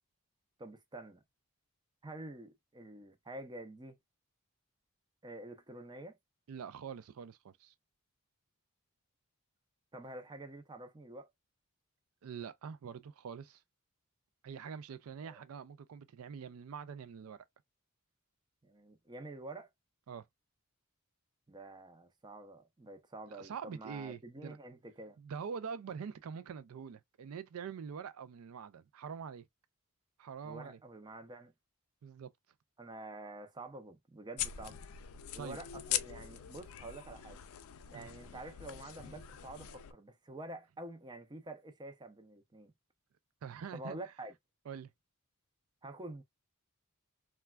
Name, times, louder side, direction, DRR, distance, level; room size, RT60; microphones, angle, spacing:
voice 1, 0.6-1.2 2.0-4.0 5.2-6.2 9.9-11.3 15.2-15.4 18.6-19.7 21.5-25.2 30.4-31.5 32.8-34.8 35.3-37.4 37.9-42.7 43.7-44.3 45.8-46.2, right 2 dB, 20° right, 0.5 m, -48 dB
voice 2, 6.5-7.7 12.2-13.6 14.4-17.4 20.1-20.2 23.3-24.6 25.2-29.4 30.2-30.8 32.0-32.3 35.4-35.6 37.9-38.1 43.4-44.0 44.7-44.9, right 6 dB, 75° right, 0.4 m, -44 dB
sound 1, 34.4-39.9, left 11 dB, 70° left, 0.4 m, -42 dB
3.2 x 2.2 x 2.2 m
head